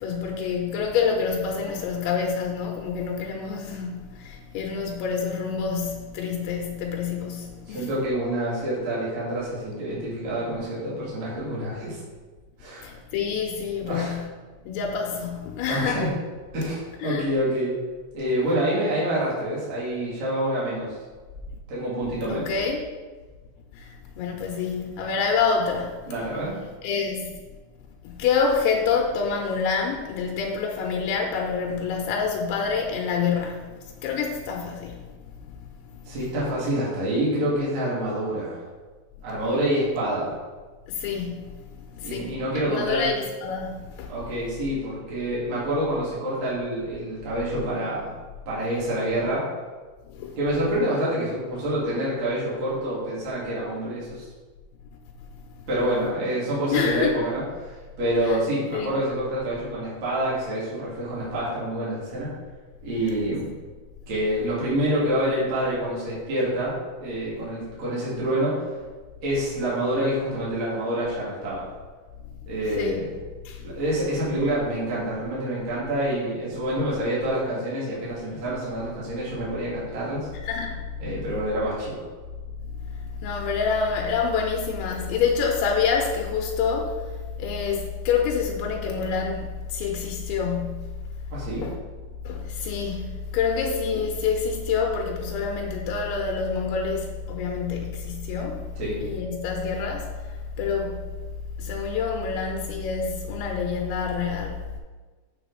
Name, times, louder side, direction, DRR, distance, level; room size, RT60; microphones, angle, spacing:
voice 1, 0.0-7.9 12.8-14.3 14.7-16.1 17.0-17.3 22.3-22.8 23.7-26.1 26.8-27.3 28.0-33.7 34.0-35.1 35.4-35.6 40.9-41.6 41.9-44.1 50.1-50.4 56.7-57.1 58.2-58.4 58.7-58.9 72.7-73.0 73.5-73.7 80.4-80.8 83.2-87.0 87.4-90.9 91.6-91.7 92.2-98.6 99.0-100.1 100.6-101.0 101.6-104.6, left 5 dB, 90° left, 1 dB, 2.7 m, -27 dB
voice 2, 7.7-12.0 12.6-12.9 13.8-14.2 15.7-16.1 16.5-17.8 18.1-21.0 21.7-22.5 26.0-26.6 36.0-38.6 39.2-40.4 42.0-43.1 44.1-48.2 48.5-49.5 50.3-54.3 55.7-62.3 62.8-63.5 64.1-66.7 67.0-68.7 69.2-71.6 72.5-73.1 73.6-80.3 81.0-81.9 91.3-91.7 98.7-99.1, right 1 dB, 45° right, -8 dB, 2.5 m, -27 dB
7.4 x 6.3 x 3.9 m, 1.4 s
omnidirectional pair, 5.9 m